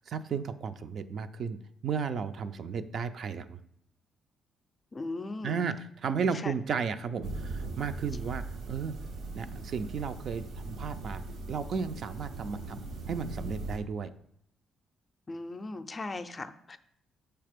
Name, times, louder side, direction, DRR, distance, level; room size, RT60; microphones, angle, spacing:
voice 1, 0.1-3.6 5.4-8.9 9.3-11.2 11.5-12.8 13.1-14.1, right 6 dB, 60° right, 10 dB, 0.4 m, -34 dB
voice 2, 4.9-5.7 6.3-6.5 15.3-16.8, left 2 dB, 30° left, 10 dB, 0.4 m, -38 dB
sound 1, 7.2-13.8, right 2 dB, 80° right, 1.1 m, -39 dB
6.5 x 3.4 x 5.1 m, 0.74 s
cardioid pair, 90°, 0 cm